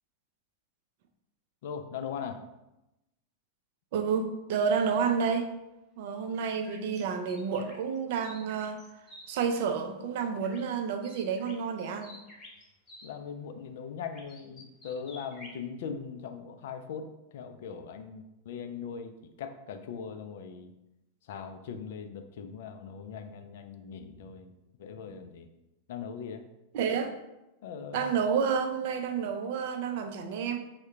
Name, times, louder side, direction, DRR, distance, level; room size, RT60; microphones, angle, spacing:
voice 1, 1.6-2.4 13.0-20.7 21.2-24.5 24.8-25.5 25.9-26.4 27.6-28.1, left 6 dB, 55° left, 7 dB, 0.4 m, -40 dB
voice 2, 3.9-5.5 6.0-8.8 9.3-12.2 26.7-27.1 27.9-30.6, right 6 dB, 50° right, 6 dB, 0.4 m, -30 dB
sound 1, 6.3-9.2 10.4-10.8 11.0-13.1 14.1-15.6, left 1 dB, 20° left, 1.0 m, -51 dB
3.6 x 2.1 x 4.4 m, 0.94 s
figure-of-eight pair, 90°, 0 cm